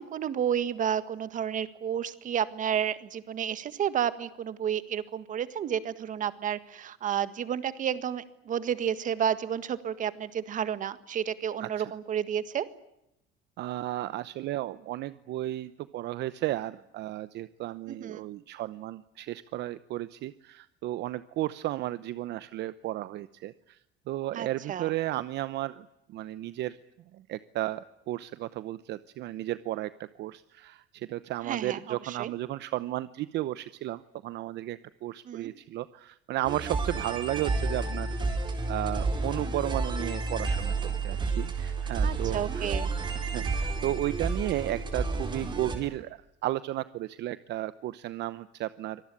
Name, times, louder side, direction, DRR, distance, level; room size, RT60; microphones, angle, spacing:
voice 1, 0.0-12.7 17.9-18.2 24.4-24.9 31.5-31.8 32.1-32.3 35.3-35.5 42.0-42.9, right 9 dB, 40° right, 13 dB, 1.7 m, -31 dB
voice 2, 11.6-11.9 13.6-23.8 24.1-26.8 27.1-29.9 30.2-38.1 38.7-40.7 41.0-42.8 43.2-49.0, right 15 dB, 60° right, 15 dB, 0.9 m, -34 dB
sound 1, 36.4-45.8, right 3 dB, 25° right, 4.7 m, -31 dB
25.0 x 19.5 x 9.7 m, 0.83 s
cardioid pair, 150°, 20 cm